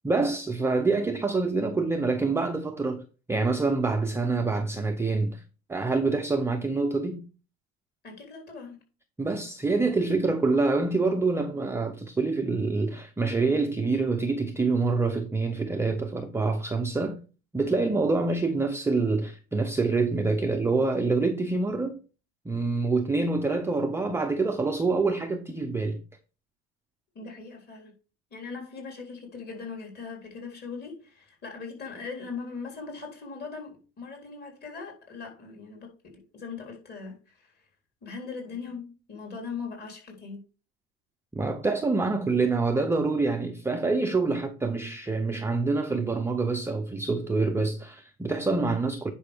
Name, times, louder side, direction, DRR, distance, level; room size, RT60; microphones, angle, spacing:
voice 1, 0.0-5.4 5.7-7.2 9.2-17.2 17.5-22.0 22.5-26.0 41.3-49.1, right 3 dB, 10° right, 0.5 m, -26 dB
voice 2, 8.0-8.8 27.2-27.9 28.3-37.5 38.0-40.4, left 5 dB, 30° left, 3.6 m, -40 dB
10.0 x 5.4 x 3.5 m
supercardioid pair, 130°, 34 cm